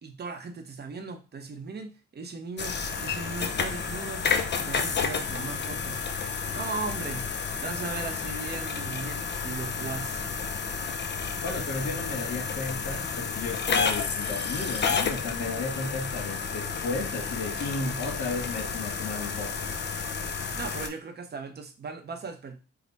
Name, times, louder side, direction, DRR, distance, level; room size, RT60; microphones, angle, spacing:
voice 1, 0.0-4.3 4.5-6.0 6.5-7.3 7.6-10.3 20.3-22.6, right 4 dB, 35° right, 0.7 m, -38 dB
sound 1, 2.6-20.9, left 5 dB, 35° left, 0.6 m, -31 dB
voice 2, 11.4-19.5, left 3 dB, 60° left, 1.5 m, -34 dB
3.3 x 2.1 x 4.0 m
cardioid pair, 90°, 30 cm